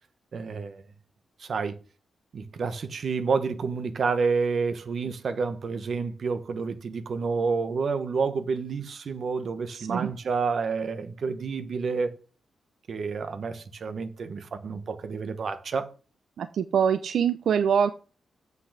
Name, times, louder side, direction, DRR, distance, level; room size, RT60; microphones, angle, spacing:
voice 1, 0.3-0.8 1.4-1.8 2.3-12.1 12.9-15.9, right 5 dB, 45° right, 1.1 m, -29 dB
voice 2, 9.7-10.1 16.4-17.9, right 7 dB, 65° right, 0.6 m, -24 dB
7.9 x 6.0 x 6.7 m
wide cardioid pair, 175°, 0 cm